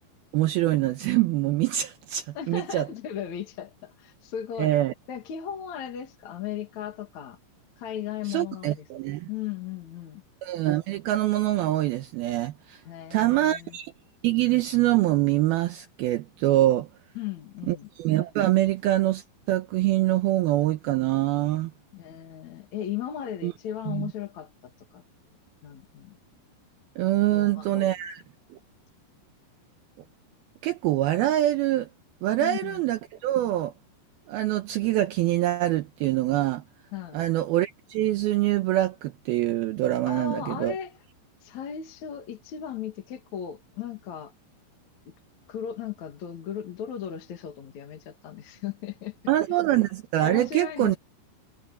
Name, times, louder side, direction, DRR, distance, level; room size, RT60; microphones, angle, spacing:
voice 1, 0.3-2.9 4.6-4.9 8.3-9.3 10.4-12.8 13.1-13.9 14.2-16.9 17.7-21.7 23.4-23.5 23.9-24.1 27.0-28.2 30.6-31.9 32.2-33.7 34.3-36.6 37.1-40.7 49.3-51.0, right 15 dB, 75° right, 2.6 m, -24 dB
voice 2, 2.3-4.8 5.1-7.4 7.8-8.9 9.3-10.2 12.8-13.8 17.1-17.9 21.9-25.0 25.6-26.2 27.3-27.9 32.4-32.8 36.9-37.2 40.0-41.0 41.4-44.3 45.5-49.1 50.2-51.0, left 9 dB, 50° left, 2.8 m, -36 dB
omnidirectional pair, 4.8 m